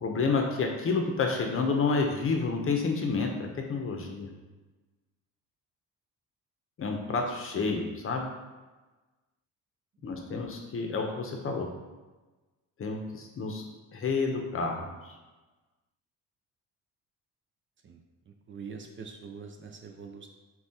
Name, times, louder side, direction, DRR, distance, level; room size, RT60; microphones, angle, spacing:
voice 1, 0.0-3.3 3.7-4.3 6.8-8.2 10.0-11.7 12.8-13.6 13.9-15.1, left 4 dB, 40° left, 2 dB, 0.7 m, -29 dB
voice 2, 18.3-20.3, right 5 dB, 40° right, 3 dB, 0.5 m, -44 dB
7.2 x 2.4 x 2.8 m, 1.2 s
cardioid pair, 100°, 33 cm